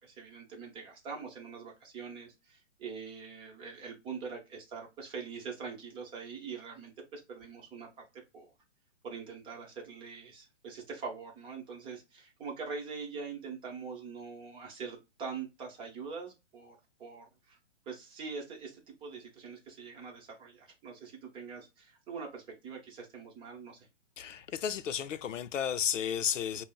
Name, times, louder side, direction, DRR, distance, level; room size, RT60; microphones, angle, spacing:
voice 1, 0.0-8.5 9.0-17.6 17.9-23.9, right 5 dB, 15° right, 0.7 m, -43 dB
voice 2, 24.2-26.6, left 9 dB, 85° left, 0.5 m, -33 dB
5.1 x 2.0 x 2.3 m
hypercardioid pair, 135°, 37 cm